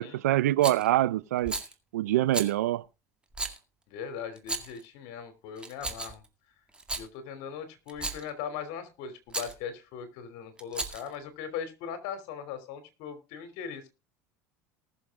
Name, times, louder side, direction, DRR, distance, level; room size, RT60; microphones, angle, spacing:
voice 1, 0.0-1.6 1.9-2.8, right 14 dB, 85° right, 0.6 m, -25 dB
Rattle, 0.6-0.9 1.4-1.7 2.3-2.5 3.3-3.6 4.4-4.8 5.6-6.3 6.7-7.1 7.9-8.3 9.3-9.5 10.6-11.1, right 2 dB, 10° right, 2.0 m, -34 dB
voice 2, 3.9-6.2 7.0-13.9, left 7 dB, 70° left, 3.2 m, -39 dB
19.5 x 7.2 x 3.7 m
hypercardioid pair, 90°, 8 cm